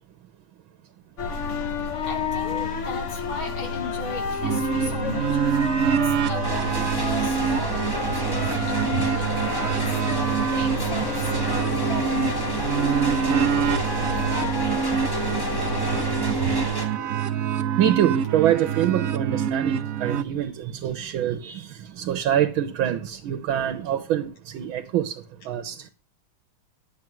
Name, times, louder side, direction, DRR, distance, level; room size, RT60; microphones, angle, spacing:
sound 1, 1.2-16.7, left 4 dB, 45° left, 1.3 m, -31 dB
voice 1, 2.0-12.6, left 4 dB, 85° left, 3.3 m, -37 dB
sound 2, 4.4-20.2, right 8 dB, 60° right, 0.9 m, -26 dB
sound 3, 6.4-16.8, equal, 10° left, 2.4 m, -31 dB
voice 2, 17.8-25.2 25.5-25.8, right 11 dB, 80° right, 1.7 m, -25 dB
11.0 x 7.5 x 6.2 m
omnidirectional pair, 2.2 m